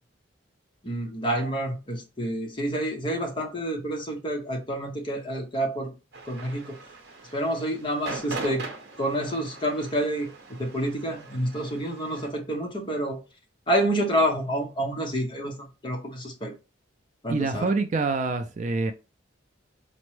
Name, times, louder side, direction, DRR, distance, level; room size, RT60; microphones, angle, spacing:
voice 1, 0.8-5.9 6.3-6.7 7.3-8.6 9.0-10.3 10.6-13.2 13.7-16.5 17.2-17.7, right 1 dB, 25° left, 0.7 m, -28 dB
sound 1, 6.1-12.3, right 3 dB, 55° right, 0.9 m, -41 dB
voice 2, 17.3-18.9, right 3 dB, 35° right, 0.3 m, -26 dB
4.3 x 2.0 x 3.1 m
head